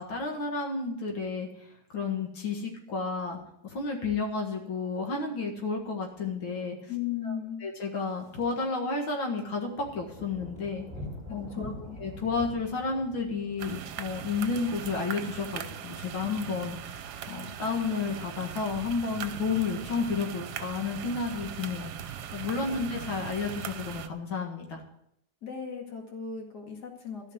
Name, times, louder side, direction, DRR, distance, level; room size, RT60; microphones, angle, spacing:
voice 1, 0.0-1.5 1.9-6.8 7.2-7.4 7.6-10.9 11.3-11.7 12.0-17.0 17.3-24.8, left 4 dB, 85° left, 0 dB, 2.6 m, -31 dB
voice 2, 6.9-7.6 11.5-12.0 22.7-22.8 25.4-27.3, left 8 dB, 55° left, 1 dB, 2.6 m, -37 dB
Thunder, 8.0-8.5 8.8-19.1 19.5-19.9 20.3-20.8 21.0-21.1 21.3-21.4 21.8-22.3 23.1-24.1, left 1 dB, 5° right, 3.1 m, -48 dB
sound 1, 13.6-24.1, right 9 dB, 65° right, 1.2 m, -40 dB
14.0 x 5.8 x 9.5 m, 0.78 s
omnidirectional pair, 2.1 m